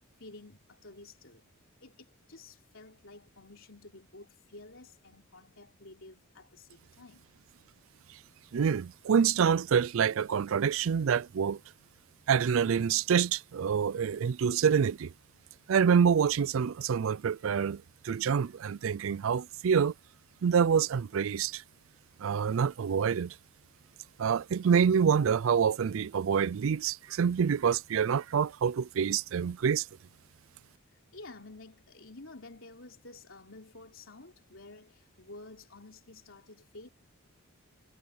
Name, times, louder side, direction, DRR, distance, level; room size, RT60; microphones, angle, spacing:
voice 1, 0.2-1.4 1.8-7.3 30.9-36.9, left 2 dB, 60° left, 3.8 m, -51 dB
voice 2, 8.5-11.6 12.3-15.1 15.7-19.9 20.4-21.6 22.2-23.3 24.2-29.9, right 7 dB, 65° right, 0.4 m, -26 dB
head